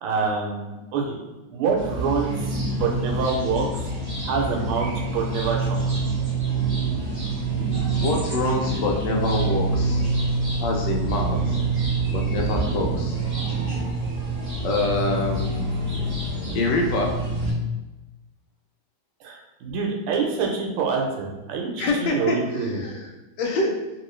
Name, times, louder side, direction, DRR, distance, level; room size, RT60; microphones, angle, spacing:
voice 1, 0.0-1.1 1.5-3.9 4.2-4.9 5.1-5.8 19.2-22.8, right 5 dB, 85° right, 0 dB, 1.5 m, -26 dB
sound 1, 1.8-17.5, right 3 dB, 30° right, 0.5 m, -26 dB
voice 2, 8.0-10.0 10.6-11.6 12.1-13.2 14.6-15.8 16.5-17.1 21.8-23.1 23.4-23.7, left 2 dB, 75° left, 0 dB, 1.1 m, -25 dB
3.0 x 2.9 x 3.1 m, 1.1 s
omnidirectional pair, 2.3 m